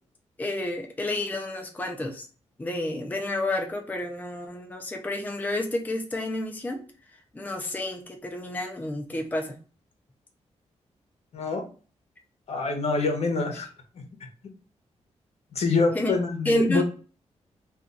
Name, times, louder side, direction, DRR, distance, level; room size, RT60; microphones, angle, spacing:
voice 1, 0.4-2.3 2.6-6.8 7.3-9.6 15.9-16.2 16.5-16.8, left 1 dB, 15° left, 3 dB, 0.5 m, -30 dB
voice 2, 11.3-11.6 12.5-13.7 13.9-14.0 15.5-16.8, left 4 dB, 60° left, 4 dB, 0.9 m, -25 dB
2.4 x 2.4 x 3.9 m, 0.38 s
cardioid pair, 80°, 12 cm